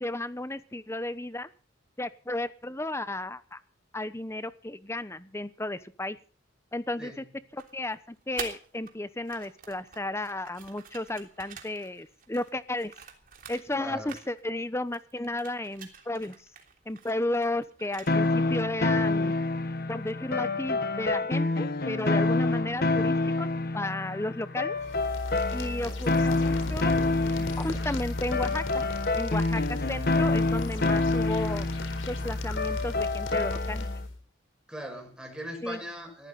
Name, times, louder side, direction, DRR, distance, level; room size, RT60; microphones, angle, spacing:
voice 1, 0.0-1.5 2.0-3.6 3.9-6.2 6.7-7.2 7.5-12.9 13.5-16.4 16.9-19.3 19.9-23.5 23.7-24.8 25.5-26.9 27.4-28.8 29.1-31.7 32.1-34.0 35.6-35.8, left 1 dB, 15° left, 14 dB, 0.9 m, -33 dB
sound 1, 7.6-8.9 9.2-13.8 14.1-14.7 14.9-18.4, right 6 dB, 45° right, 3.3 m, -46 dB
voice 2, 13.8-14.2 34.7-36.3, right 1 dB, 5° right, 2 dB, 6.2 m, -39 dB
sound 2, 18.1-34.0, left 2 dB, 50° left, 1.1 m, -28 dB
sound 3, 24.8-34.2, left 2 dB, 80° left, 4.3 m, -35 dB
20.5 x 14.5 x 4.1 m, 0.40 s
head